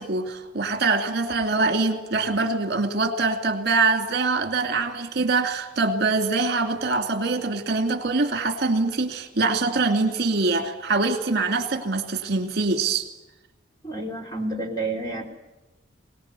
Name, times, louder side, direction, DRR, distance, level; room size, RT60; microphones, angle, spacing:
voice 1, 0.0-13.1, right 3 dB, 55° right, 5 dB, 2.5 m, -24 dB
voice 2, 13.8-15.2, right 2 dB, 20° left, 2 dB, 3.6 m, -29 dB
23.0 x 19.0 x 8.3 m, 1.0 s
head